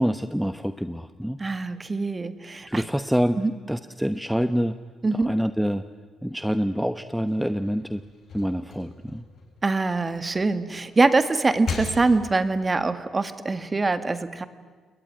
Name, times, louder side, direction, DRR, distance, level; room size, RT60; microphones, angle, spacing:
voice 1, 0.0-1.4 2.7-3.4 3.7-4.8 5.1-5.8 6.2-8.0 8.3-9.2, equal, ahead, 10 dB, 0.9 m, -26 dB
voice 2, 1.4-2.8 3.4-3.5 5.0-5.3 9.6-14.4, right 3 dB, 25° right, 11 dB, 1.9 m, -24 dB
sound 1, 7.1-10.3 10.8-12.6, left 4 dB, 55° left, 7.2 m, -38 dB
29.5 x 21.0 x 9.5 m, 1.5 s
cardioid pair, 90°, 0 cm